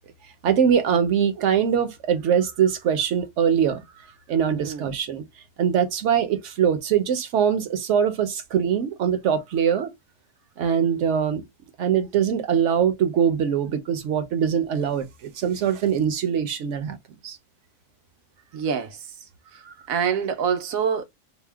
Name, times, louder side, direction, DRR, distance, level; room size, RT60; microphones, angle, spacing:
voice 1, 0.4-5.2 5.6-9.9 10.6-11.4 11.8-17.0 17.2-17.4 19.7-19.8, right 8 dB, 65° right, 0.9 m, -22 dB
voice 2, 18.5-19.0 19.9-21.0, right 7 dB, 90° right, 1.1 m, -25 dB
2.8 x 2.0 x 3.3 m
omnidirectional pair, 1.4 m